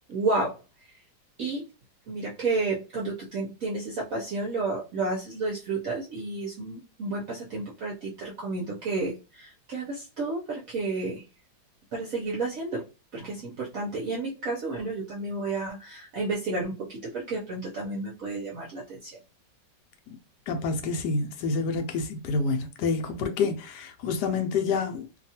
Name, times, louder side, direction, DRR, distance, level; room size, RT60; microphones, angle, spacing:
voice 1, 0.1-0.6 1.4-1.6 2.1-11.2 11.9-12.8 13.1-19.2, right 3 dB, 60° right, 0.9 m, -31 dB
voice 2, 20.5-25.1, left 4 dB, 75° left, 1.0 m, -28 dB
2.9 x 2.3 x 2.7 m
omnidirectional pair, 2.0 m